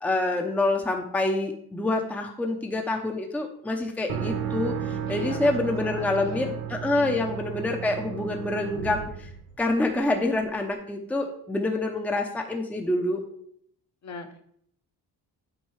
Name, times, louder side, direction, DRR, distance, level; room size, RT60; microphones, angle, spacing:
voice 1, 0.0-9.3 9.6-13.2, left 2 dB, 5° left, 3 dB, 0.6 m, -27 dB
sound 1, 4.1-10.0, right 8 dB, 90° right, 0.7 m, -33 dB
voice 2, 5.0-6.6 7.0-7.3 14.0-14.4, left 4 dB, 45° left, 5 dB, 0.8 m, -40 dB
7.3 x 4.5 x 3.2 m, 0.66 s
cardioid pair, 100°, 40 cm